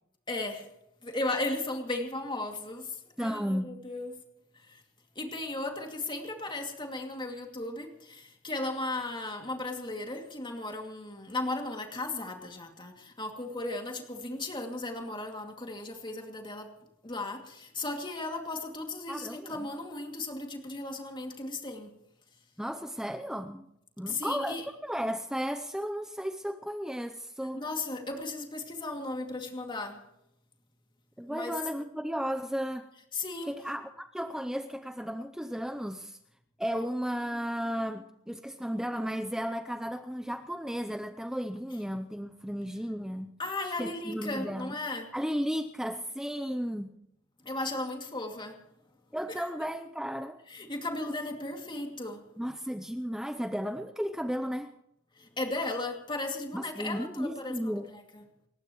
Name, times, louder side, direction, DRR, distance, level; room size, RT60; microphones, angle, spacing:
voice 1, 0.3-0.7 1.0-4.2 4.5-4.8 5.2-16.7 17.0-21.9 24.1-24.7 27.5-30.0 31.3-31.6 33.1-33.5 43.4-45.1 47.4-48.6 49.4-49.5 50.5-52.2 55.2-58.2, left 2 dB, 25° left, 2 dB, 2.5 m, -36 dB
voice 2, 3.2-3.8 19.1-19.7 22.6-23.7 24.0-27.6 31.2-32.9 33.5-36.2 36.6-43.3 43.8-44.8 45.1-46.9 49.1-50.4 52.4-54.7 56.5-57.9, equal, 5° right, 8 dB, 0.7 m, -34 dB
29.0 x 15.0 x 3.1 m, 0.80 s
head